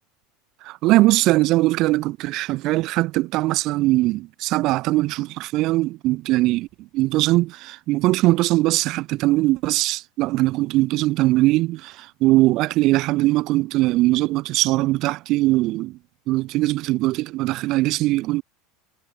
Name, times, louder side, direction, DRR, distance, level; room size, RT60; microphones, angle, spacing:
voice 1, 0.6-16.0 16.3-18.4, right 18 dB, 50° right, 1.7 m, -21 dB
supercardioid pair, 145°, 0 cm